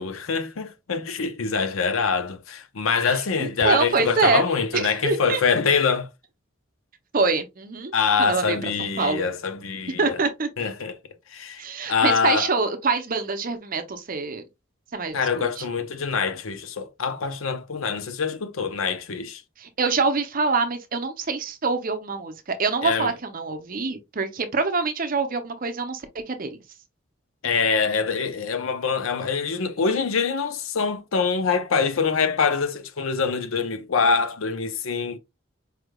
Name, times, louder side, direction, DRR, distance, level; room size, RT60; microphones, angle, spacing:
voice 1, 0.0-6.1 7.9-10.2 10.6-11.0 11.3-11.6 11.9-12.5 15.1-19.4 22.8-23.1 27.4-35.2, left 5 dB, 85° left, 0.7 m, -24 dB
voice 2, 3.1-4.4 4.7-5.4 7.1-7.9 8.2-8.6 9.0-9.3 10.0-10.5 11.6-14.4 14.9-15.5 19.6-26.5, right 4 dB, 45° right, 0.7 m, -25 dB
4.8 x 3.3 x 2.3 m
head